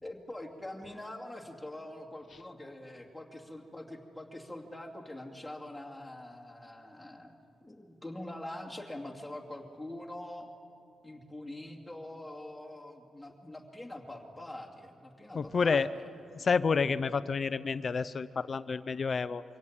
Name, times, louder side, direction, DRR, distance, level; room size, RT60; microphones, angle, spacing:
voice 1, 0.0-7.3 7.6-10.5 11.0-16.5, left 1 dB, 5° left, -1 dB, 2.6 m, -44 dB
voice 2, 15.3-15.9 16.3-19.4, left 5 dB, 35° left, 15 dB, 0.5 m, -29 dB
24.5 x 17.0 x 8.8 m, 2.5 s
cardioid pair, 130°, 0 cm